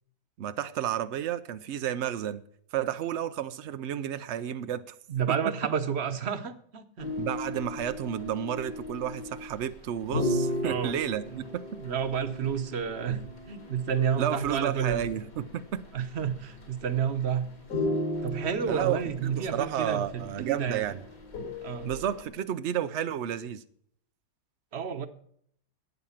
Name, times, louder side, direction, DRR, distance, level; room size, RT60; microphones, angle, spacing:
voice 1, 0.4-2.4 2.7-4.9 5.3-5.4 7.2-11.6 14.2-15.8 18.7-21.0 21.8-23.6, right 10 dB, 90° right, 0.6 m, -31 dB
voice 2, 5.1-7.1 10.6-10.9 11.3-11.4 11.8-15.0 15.9-17.5 18.2-20.9 21.6-21.9 24.7-25.1, right 7 dB, 45° right, 1.0 m, -30 dB
sound 1, 7.0-22.2, left 1 dB, 75° left, 5.2 m, -36 dB
12.5 x 8.9 x 5.7 m
omnidirectional pair, 1.9 m